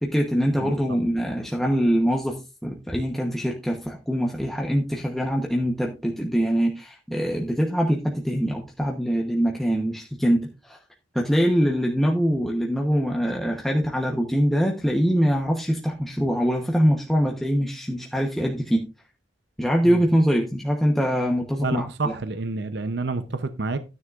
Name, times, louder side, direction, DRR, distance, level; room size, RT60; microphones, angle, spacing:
voice 1, 0.0-2.4 2.6-10.8 11.1-18.8 19.6-22.1, equal, ahead, 1.0 m, -23 dB
voice 2, 21.6-23.8, right 3 dB, 65° right, 0.7 m, -29 dB
12.5 x 9.6 x 2.5 m
head